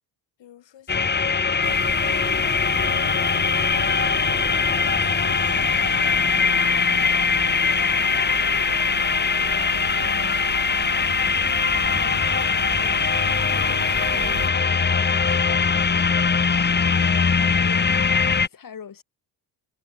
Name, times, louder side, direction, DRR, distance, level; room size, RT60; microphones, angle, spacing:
voice 1, 0.4-1.9 2.4-3.2 3.7-5.2 7.5-15.5, left 11 dB, 65° left, 5.0 m, -50 dB
sound 1, 0.9-18.5, left 5 dB, 20° left, 1.1 m, -21 dB
sound 2, 1.6-14.5, right 9 dB, 50° right, 2.1 m, -37 dB
voice 2, 17.5-19.0, left 7 dB, 45° left, 5.5 m, -42 dB
cardioid pair, 105°, 47 cm